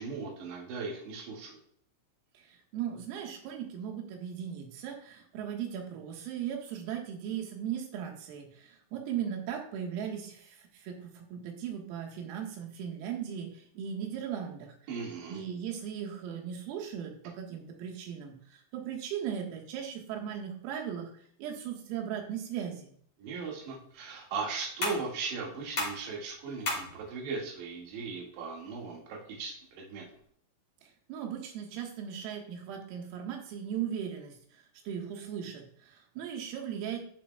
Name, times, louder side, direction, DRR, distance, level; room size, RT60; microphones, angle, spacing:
voice 1, 0.0-1.6 14.9-15.4 23.2-30.1, right 4 dB, 60° right, -2 dB, 4.1 m, -38 dB
voice 2, 2.4-14.8 15.3-22.9 30.8-37.0, right 8 dB, 85° right, 2 dB, 4.2 m, -38 dB
sound 1, 23.3-30.3, left 2 dB, 30° left, 3.3 m, -41 dB
15.0 x 7.0 x 2.4 m, 0.62 s
omnidirectional pair, 5.9 m